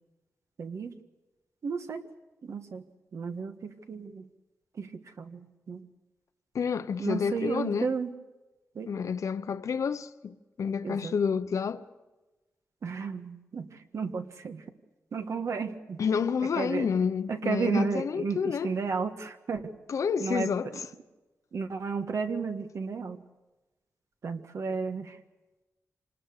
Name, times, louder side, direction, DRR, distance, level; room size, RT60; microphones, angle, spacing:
voice 1, 0.6-1.0 1.6-2.0 2.4-2.8 3.1-4.3 4.8-4.9 5.2-5.8 7.0-8.1 8.7-8.9 10.8-11.1 12.8-14.6 15.1-16.0 16.6-16.9 17.3-19.7 20.2-20.8 21.5-23.2 24.2-25.2, right 5 dB, 65° right, 1.5 m, -33 dB
voice 2, 6.5-7.9 8.9-11.8 16.0-18.7 19.9-20.8, left 6 dB, 70° left, 0.9 m, -29 dB
27.0 x 19.5 x 6.7 m
wide cardioid pair, 170°, 5 cm